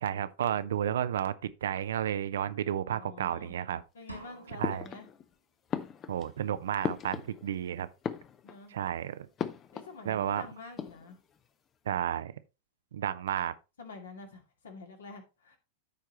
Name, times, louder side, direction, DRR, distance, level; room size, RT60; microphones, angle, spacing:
voice 1, 0.0-3.8 4.6-4.9 6.1-7.9 8.7-9.3 10.0-10.4 11.9-12.3 12.9-13.5, right 10 dB, 60° right, 0.5 m, -32 dB
voice 2, 2.9-3.6 3.9-5.1 8.4-8.7 9.7-11.2 13.8-15.6, left 4 dB, 65° left, 2.2 m, -48 dB
sound 1, 4.1-5.1, right 1 dB, 85° right, 1.4 m, -47 dB
sound 2, 4.6-5.3 5.7-7.6 7.9-8.8 9.4-10.0 10.3-10.4 10.6-11.3, left 8 dB, 25° left, 0.6 m, -37 dB
13.5 x 4.7 x 2.9 m
figure-of-eight pair, 90°, 0 cm